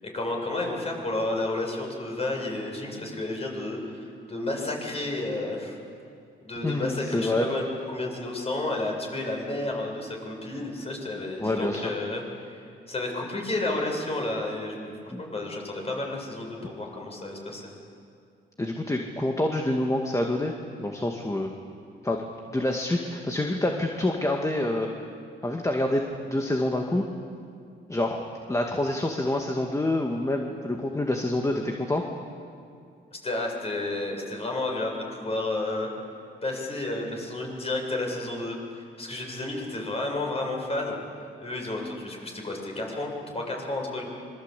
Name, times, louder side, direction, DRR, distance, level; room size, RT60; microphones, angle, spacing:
voice 1, 0.0-5.8 6.5-12.6 12.9-17.7 33.1-35.9 36.4-41.0 41.4-44.0, left 2 dB, 30° left, 0 dB, 7.5 m, -31 dB
voice 2, 6.6-7.5 11.4-11.9 15.1-15.2 18.6-20.5 20.8-21.5 22.0-24.9 25.4-27.0 27.9-28.2 28.5-32.0, left 1 dB, 15° left, 2 dB, 2.1 m, -27 dB
25.5 x 22.5 x 8.4 m, 2.4 s
cardioid pair, 90°, 20 cm